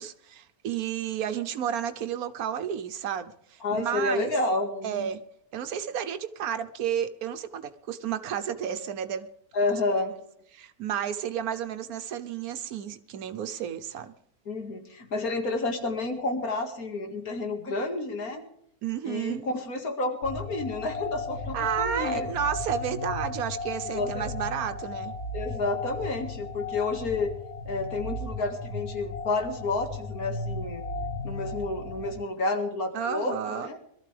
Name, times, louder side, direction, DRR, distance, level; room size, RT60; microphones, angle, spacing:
voice 1, 0.0-4.3 4.8-5.2 5.5-9.3 10.5-14.1 18.8-19.4 21.5-25.1 32.9-33.7, right 9 dB, 75° right, 9 dB, 1.3 m, -32 dB
voice 2, 3.6-5.1 9.5-10.1 14.5-18.4 19.0-22.3 23.9-24.3 25.3-27.3 27.7-30.8 31.2-33.8, left 3 dB, 75° left, 3 dB, 2.4 m, -30 dB
sound 1, 20.2-32.1, left 2 dB, 55° left, 3.8 m, -35 dB
22.0 x 13.5 x 3.4 m, 0.71 s
omnidirectional pair, 1.6 m